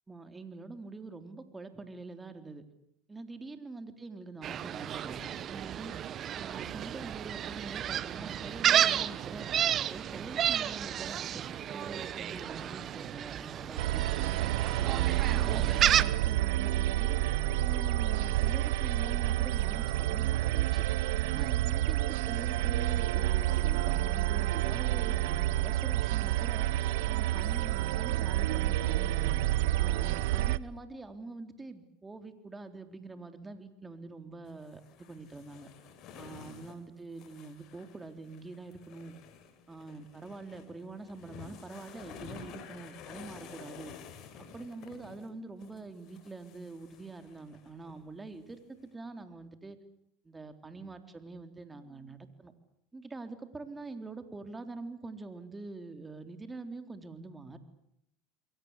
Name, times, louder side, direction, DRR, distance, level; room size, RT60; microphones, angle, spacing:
voice 1, 0.1-2.6 3.1-5.9 6.3-9.5 9.9-14.3 14.8-17.2 17.6-20.8 21.3-26.7 27.1-29.4 29.8-35.7 36.2-39.2 39.7-43.9 44.4-49.8 50.2-52.5 52.9-57.6, right 3 dB, 15° right, 8 dB, 3.6 m, -45 dB
Gull seagull, 4.4-16.0, right 10 dB, 40° right, 1.2 m, -32 dB
sound 1, 13.8-30.6, right 15 dB, 80° right, 1.1 m, -29 dB
sound 2, 34.4-45.3 45.6-48.0 48.3-48.4, left 6 dB, 55° left, 5.3 m, -51 dB
28.0 x 22.5 x 8.3 m, 0.77 s
supercardioid pair, 105°, 0 cm